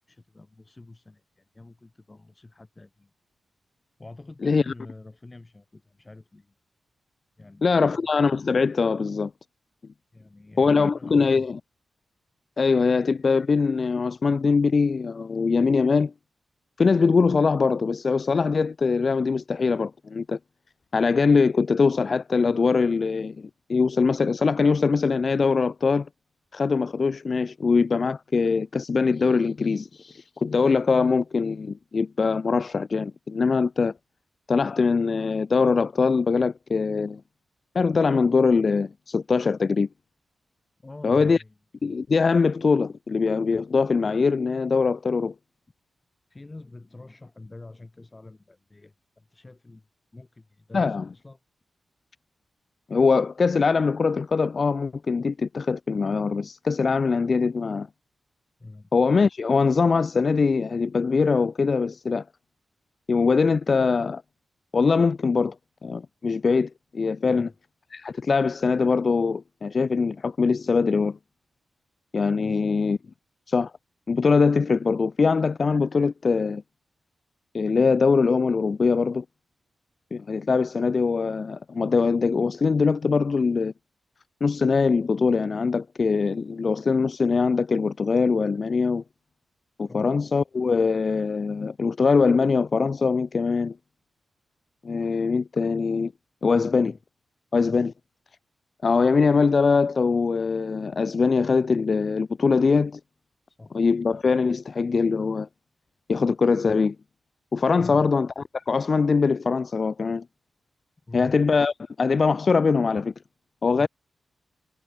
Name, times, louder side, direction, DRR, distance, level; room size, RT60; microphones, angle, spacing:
voice 1, 0.1-3.1 4.0-6.5 7.4-7.9 10.1-11.5 40.8-41.5 46.3-49.9 50.1-51.4 58.6-58.9 67.3-67.5 72.4-72.9 89.9-90.1 96.5-97.0 97.6-97.8 103.5-103.7 107.8-108.2 111.1-111.4 113.7-113.9, left 2 dB, 30° left, 3.1 m, -46 dB
voice 2, 4.4-4.7 7.6-9.3 10.6-11.6 12.6-16.1 16.8-20.4 20.9-26.1 26.5-33.9 34.5-37.2 37.8-39.9 41.0-41.4 41.8-45.3 50.7-51.0 52.9-57.9 58.9-62.2 63.1-64.2 64.7-65.6 65.8-67.5 67.9-71.2 72.1-73.0 73.5-73.7 74.1-76.6 77.5-79.2 80.1-83.7 84.4-89.0 89.8-93.8 94.8-96.1 96.4-96.9 97.5-97.9 98.8-103.0 103.7-105.5 106.1-107.0 107.5-110.2 111.1-113.1 113.6-113.9, left 4 dB, 50° left, 0.3 m, -22 dB
cardioid pair, 60°, 0 cm